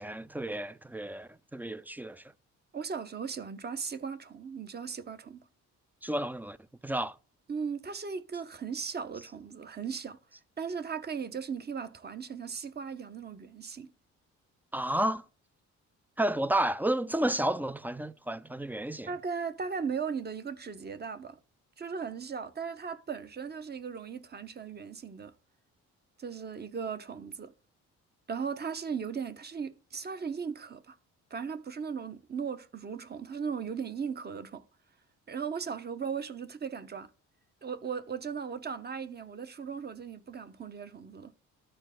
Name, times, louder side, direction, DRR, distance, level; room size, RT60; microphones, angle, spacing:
voice 1, 0.0-2.2 6.0-6.6 6.8-7.2 14.7-15.2 16.2-19.1, right 1 dB, 5° right, 0.3 m, -31 dB
voice 2, 2.7-5.4 7.5-10.2 10.6-13.9 19.1-21.4 21.8-25.3 26.2-27.5 28.3-31.0 31.3-34.6 35.3-37.1 37.6-41.3, right 6 dB, 35° right, 0.8 m, -37 dB
13.0 x 4.5 x 3.6 m
cardioid pair, 90°, 30 cm